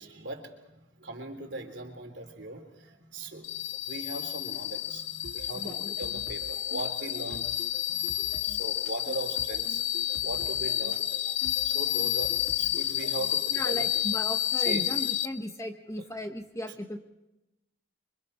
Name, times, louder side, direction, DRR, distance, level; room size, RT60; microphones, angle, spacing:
voice 1, 0.0-7.8 8.4-9.8 10.2-11.0 11.6-14.0 14.5-14.9 16.0-16.1, right 2 dB, 65° right, 4 dB, 3.3 m, -40 dB
sound 1, 3.4-15.3, left 12 dB, 85° left, 0.9 m, -30 dB
sound 2, 5.2-13.5, right 1 dB, 85° right, 2.9 m, -46 dB
voice 2, 5.6-5.9 13.5-17.0, equal, 15° left, 5 dB, 1.2 m, -36 dB
29.0 x 24.5 x 4.4 m, 0.98 s
head